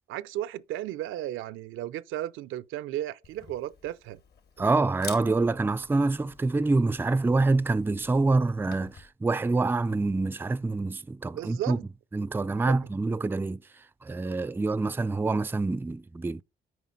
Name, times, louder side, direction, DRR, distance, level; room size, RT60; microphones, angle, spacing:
voice 1, 0.1-4.2 4.6-4.7 11.3-11.8 12.7-12.8, right 13 dB, 85° right, 0.6 m, -34 dB
Camera, 3.2-9.1, left 6 dB, 55° left, 1.8 m, -48 dB
voice 2, 4.6-11.8 12.1-13.6 14.0-16.4, right 3 dB, 10° right, 0.4 m, -26 dB
9.3 x 5.0 x 4.1 m
cardioid pair, 90°, 20 cm